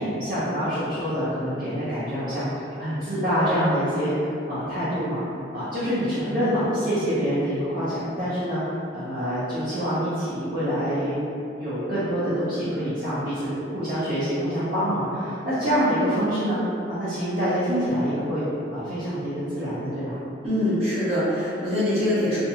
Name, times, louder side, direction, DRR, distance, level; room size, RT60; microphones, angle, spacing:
voice 1, 0.0-2.5 2.8-5.2 5.5-11.2 11.6-16.6 16.9-18.4 18.7-20.2, equal, 50° right, -15 dB, 0.7 m, -26 dB
voice 2, 20.4-22.4, left 1 dB, 35° right, -13 dB, 1.0 m, -23 dB
2.5 x 2.2 x 2.8 m, 2.6 s
head